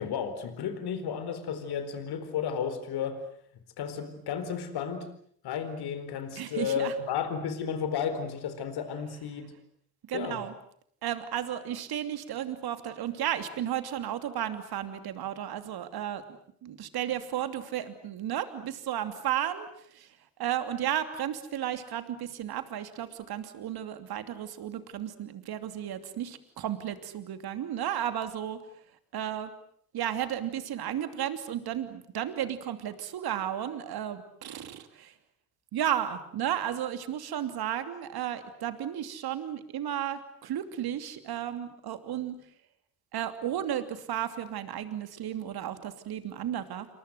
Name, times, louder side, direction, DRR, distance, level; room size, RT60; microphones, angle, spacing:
voice 1, 0.0-3.2 3.8-5.1 5.4-9.6 10.1-10.5, left 7 dB, 65° left, 10 dB, 4.4 m, -33 dB
voice 2, 6.3-6.9 10.1-10.5 11.0-16.2 16.6-19.7 19.9-20.1 20.4-28.6 29.1-29.5 29.9-35.1 35.7-42.4 43.1-46.9, right 10 dB, 60° right, 10 dB, 2.9 m, -33 dB
28.0 x 24.5 x 7.9 m, 0.65 s
hypercardioid pair, 45°, 42 cm